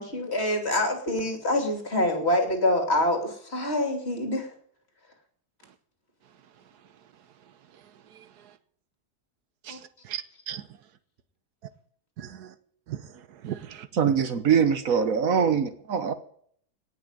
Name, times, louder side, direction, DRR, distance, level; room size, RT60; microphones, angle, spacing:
voice 1, 0.0-4.5 9.7-9.8, left 1 dB, 40° left, 3.2 m, -26 dB
voice 2, 6.2-8.6 9.6-10.8 11.6-11.7 12.2-12.6 12.9-14.1, right 10 dB, 85° right, 1.5 m, -41 dB
voice 3, 14.0-16.2, right 7 dB, 60° right, 1.4 m, -23 dB
18.0 x 6.3 x 9.1 m
omnidirectional pair, 1.7 m